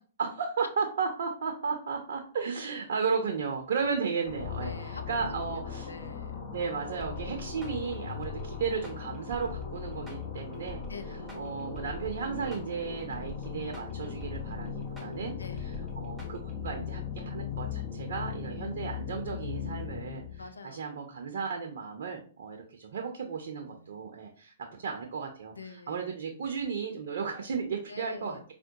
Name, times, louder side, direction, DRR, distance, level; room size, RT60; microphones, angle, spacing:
voice 1, 0.2-5.9 6.5-10.8 11.3-15.4 15.6-15.7 16.0-28.4, right 5 dB, 60° right, 3 dB, 0.5 m, -34 dB
sound 1, 4.3-20.5, left 7 dB, 40° left, 0.7 m, -39 dB
voice 2, 4.6-6.4 10.9-11.4 15.4-15.7 20.4-20.9 23.6-24.0 25.5-26.1 27.9-28.4, left 4 dB, 80° left, 8 dB, 0.4 m, -46 dB
sound 2, 7.0-16.8, equal, 5° right, 0.8 m, -46 dB
4.4 x 2.1 x 2.7 m, 0.42 s
figure-of-eight pair, 115°, 0 cm